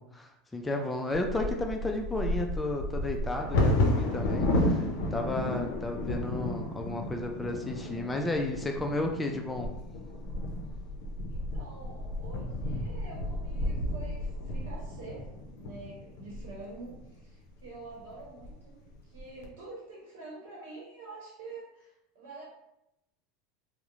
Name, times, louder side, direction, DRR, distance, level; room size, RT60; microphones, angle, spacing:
voice 1, 0.1-4.8 5.1-9.7, left 2 dB, 10° left, 2 dB, 0.3 m, -33 dB
Bird vocalization bird call bird song / Wind / Thunder, 1.1-17.0 17.6-17.7 18.1-18.5 18.9-19.4, left 1 dB, 70° left, 0.5 m, -32 dB
voice 2, 11.3-15.3 15.6-22.4, right 3 dB, 80° right, -5 dB, 0.8 m, -47 dB
2.9 x 2.0 x 2.4 m, 0.87 s
supercardioid pair, 110°, 0 cm